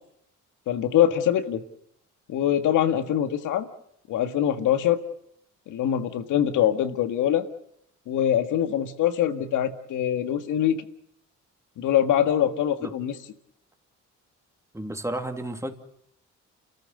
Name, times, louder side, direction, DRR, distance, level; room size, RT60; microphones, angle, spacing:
voice 1, 0.7-1.6 2.3-3.7 4.1-5.0 5.7-7.4 8.1-10.8 11.8-13.1, left 10 dB, 85° left, 10 dB, 1.9 m, -23 dB
voice 2, 14.7-15.7, right 1 dB, 10° right, 6 dB, 2.8 m, -32 dB
29.5 x 14.0 x 7.9 m, 0.75 s
cardioid pair, 90°, 30 cm